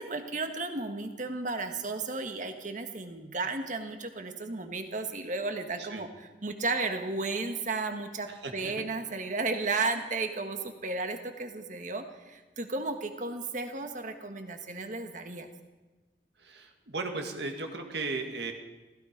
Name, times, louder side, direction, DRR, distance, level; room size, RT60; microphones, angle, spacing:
voice 1, 0.0-15.5, right 3 dB, 45° right, 6 dB, 1.6 m, -34 dB
voice 2, 8.3-8.9 16.4-18.5, right 3 dB, 65° right, 4 dB, 2.0 m, -36 dB
16.0 x 15.5 x 5.2 m, 1.2 s
head